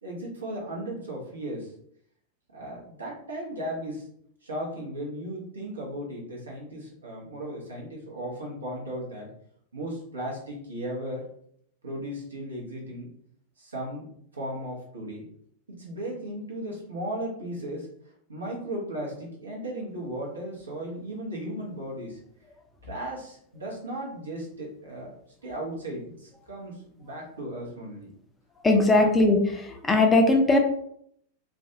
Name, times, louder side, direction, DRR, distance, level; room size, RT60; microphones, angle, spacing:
voice 1, 0.0-1.7 2.5-4.1 4.4-9.3 9.7-11.3 11.8-13.1 13.6-14.1 14.3-15.3 15.7-17.9 18.3-22.2 22.8-25.1 25.4-28.1 28.9-29.1, right 1 dB, 75° right, -3 dB, 0.8 m, -36 dB
voice 2, 28.6-30.6, left 2 dB, 15° left, 3 dB, 0.4 m, -20 dB
2.5 x 2.2 x 2.7 m, 0.68 s
figure-of-eight pair, 90°, 0 cm